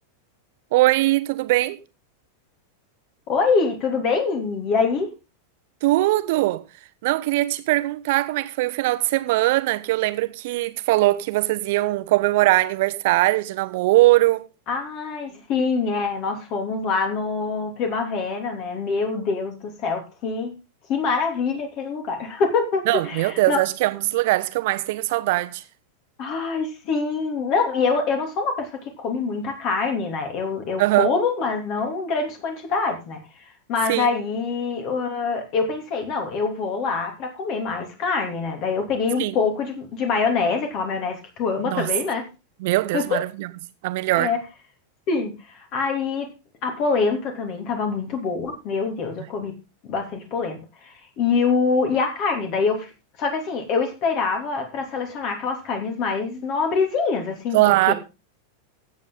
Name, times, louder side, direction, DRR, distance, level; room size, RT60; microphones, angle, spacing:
voice 1, 0.7-1.8 5.8-6.6 7.0-14.5 22.9-25.6 30.8-31.1 33.9-34.1 39.2-39.3 41.6-41.9 42.6-43.5 43.8-44.3 57.5-57.9, right 18 dB, 50° right, 1.1 m, -21 dB
voice 2, 3.3-5.1 14.7-20.5 20.9-23.6 26.2-28.7 29.0-33.2 33.7-42.2 42.9-43.2 44.1-44.4 45.1-46.3 46.6-49.5 49.9-50.6 51.2-52.9 53.2-57.6 57.9-58.0, left 4 dB, 40° left, 2.9 m, -25 dB
15.5 x 8.1 x 3.9 m
figure-of-eight pair, 90°, 0 cm